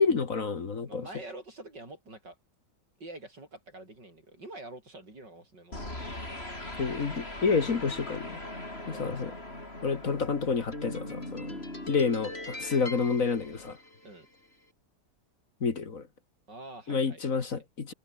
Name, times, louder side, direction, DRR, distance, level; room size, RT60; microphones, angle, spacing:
voice 1, 0.0-1.1 6.8-8.4 9.0-9.3 9.8-11.5 11.9-13.8 15.6-16.0 16.9-17.9, left 5 dB, 50° left, 2.1 m, -29 dB
voice 2, 0.9-2.4 3.0-6.1 8.8-9.3 11.5-11.7 14.0-14.3 16.5-17.6, right 2 dB, 75° right, 8.8 m, -46 dB
sound 1, 5.7-14.3, left 1 dB, 35° left, 6.8 m, -40 dB
omnidirectional pair, 1.9 m